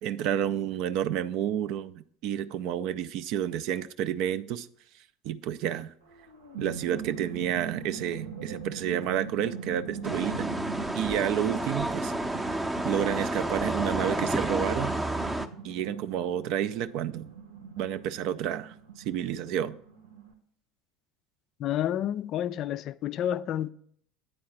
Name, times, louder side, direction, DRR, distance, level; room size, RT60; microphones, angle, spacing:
voice 1, 0.0-4.7 5.2-5.9 6.6-10.5 10.9-12.1 12.8-14.9 15.6-17.4 17.8-19.8, right 10 dB, 55° right, 0.4 m, -30 dB
sound 1, 6.1-20.3, right 6 dB, 75° right, 1.2 m, -42 dB
sound 2, 10.0-15.5, right 1 dB, 10° right, 0.6 m, -30 dB
voice 2, 21.6-23.7, left 11 dB, 45° left, 0.3 m, -30 dB
9.1 x 4.6 x 5.8 m
figure-of-eight pair, 70°, 0 cm